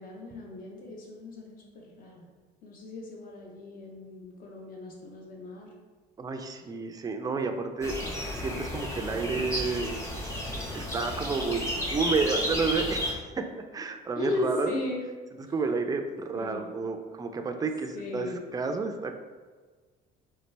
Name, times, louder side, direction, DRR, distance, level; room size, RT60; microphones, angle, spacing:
voice 1, 0.0-2.3 2.6-5.7 14.1-15.1 16.3-16.6 17.9-18.4, left 2 dB, 50° left, -1 dB, 1.0 m, -36 dB
voice 2, 6.2-8.0 8.3-10.0 10.7-14.7 15.5-19.1, right 4 dB, 20° right, 6 dB, 0.4 m, -31 dB
sound 1, 7.8-13.1, left 1 dB, 15° left, 0.8 m, -32 dB
4.1 x 3.3 x 3.3 m, 1.4 s
cardioid pair, 110°, 19 cm